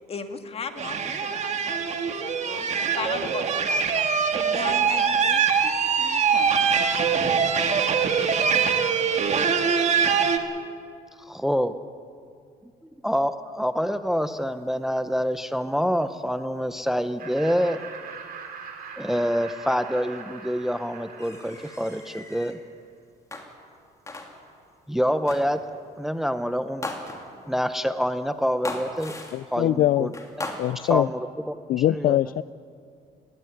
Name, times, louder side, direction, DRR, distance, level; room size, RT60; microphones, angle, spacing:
voice 1, 0.0-4.1 4.4-6.7, left 5 dB, 35° left, 7 dB, 2.0 m, -37 dB
sound 1, 0.8-10.4, right 6 dB, 45° right, 1.9 m, -23 dB
voice 2, 11.2-11.7 13.0-17.8 19.0-22.6 24.9-25.6 26.0-26.9 27.5-29.1 29.5-30.1 30.9-32.2, equal, ahead, 11 dB, 0.7 m, -26 dB
Laughter, 17.2-22.5, right 6 dB, 60° right, 4.1 m, -42 dB
sound 2, 21.2-22.6 23.3-23.8 24.1-24.6 25.3-25.6 26.8-27.5 28.6-29.6 30.1-30.9, left 2 dB, 20° left, 2.8 m, -37 dB
voice 3, 29.3-30.1 30.6-31.1 31.7-32.4, left 13 dB, 55° left, 16 dB, 0.4 m, -22 dB
20.0 x 16.5 x 9.6 m, 2.4 s
cardioid pair, 110°, 17 cm